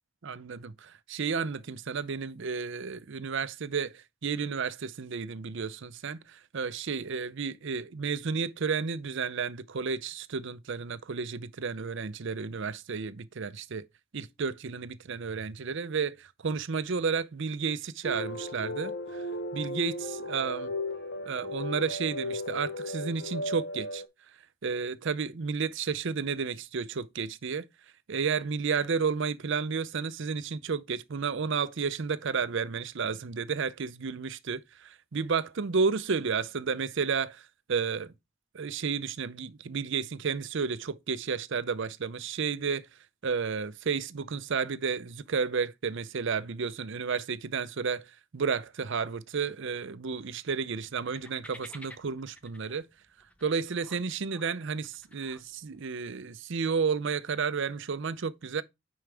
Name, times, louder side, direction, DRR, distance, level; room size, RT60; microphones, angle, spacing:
voice 1, 0.2-13.9 14.1-19.3 19.5-20.8 21.2-24.0 24.6-27.7 28.1-38.1 38.5-42.9 43.2-52.9 53.4-58.6, right 5 dB, 55° right, 0.5 m, -32 dB
sound 1, 18.0-24.1, left 1 dB, 50° left, 1.0 m, -36 dB
sound 2, 50.8-55.8, equal, 5° left, 0.7 m, -52 dB
9.4 x 4.7 x 3.4 m
head